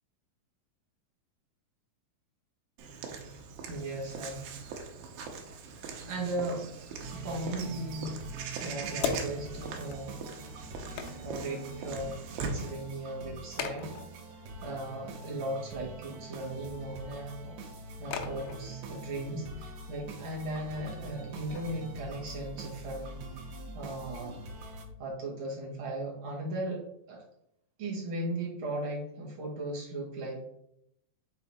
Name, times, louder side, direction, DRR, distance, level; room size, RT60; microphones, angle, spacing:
Walk footsteps / Bird vocalization bird call bird song, 2.8-12.7, right 5 dB, 85° right, 2.6 m, -41 dB
voice 1, 3.7-4.5 5.7-8.2 8.6-10.2 10.9-13.9 14.6-17.6 18.0-23.2 23.7-24.4 25.0-26.8 27.1-27.2 27.8-30.5, right 1 dB, 45° right, -3 dB, 2.0 m, -37 dB
sound 1, 7.0-24.9, right 2 dB, 70° right, 1.8 m, -44 dB
sound 2, 7.3-24.9, left 6 dB, 85° left, 1.6 m, -44 dB
5.7 x 4.0 x 4.2 m, 0.76 s
omnidirectional pair, 4.0 m